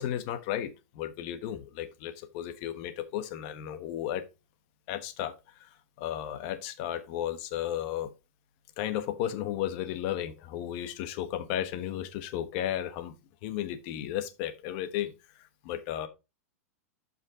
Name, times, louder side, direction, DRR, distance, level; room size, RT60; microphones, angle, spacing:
voice 1, 0.0-4.2 4.9-5.3 5.6-5.7 6.0-8.1 8.8-13.1 13.4-15.1 15.6-16.1, left 11 dB, 50° left, 1.2 m, -34 dB
7.8 x 5.6 x 3.6 m
supercardioid pair, 140°, 8 cm